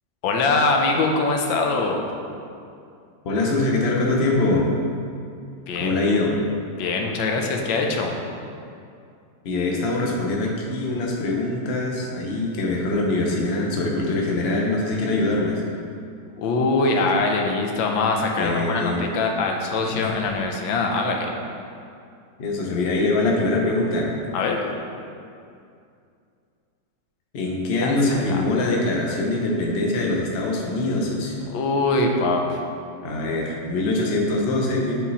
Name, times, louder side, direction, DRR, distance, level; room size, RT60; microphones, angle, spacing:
voice 1, 0.2-2.0 5.7-6.2 6.8-8.2 16.4-21.3 24.3-24.6 27.8-28.4 31.5-32.6, left 3 dB, 85° left, 2 dB, 1.5 m, -23 dB
voice 2, 3.2-4.6 5.8-6.3 9.4-15.6 18.3-19.0 19.8-20.1 22.4-24.1 27.3-31.4 33.0-34.9, left 2 dB, 45° left, -2 dB, 0.8 m, -23 dB
7.9 x 4.2 x 4.1 m, 2.4 s
omnidirectional pair, 2.1 m